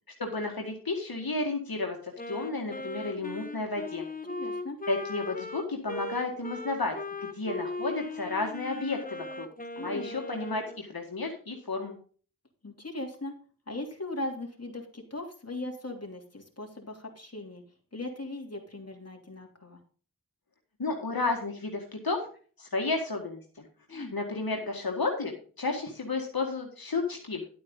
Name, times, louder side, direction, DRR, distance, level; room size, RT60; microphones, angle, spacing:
voice 1, 0.2-4.1 4.9-7.0 7.2-9.5 9.8-12.0 20.8-22.2 22.6-23.4 23.9-27.4, left 3 dB, 85° left, 1 dB, 1.9 m, -32 dB
Wind instrument woodwind instrument, 2.2-10.8, left 2 dB, 25° left, 1.1 m, -39 dB
voice 2, 4.4-4.8 9.8-10.1 12.6-13.3 13.7-17.6 17.9-19.8 23.9-24.2, left 2 dB, 45° left, 1 dB, 3.2 m, -39 dB
11.0 x 8.7 x 3.8 m, 0.40 s
wide cardioid pair, 50°, 35 cm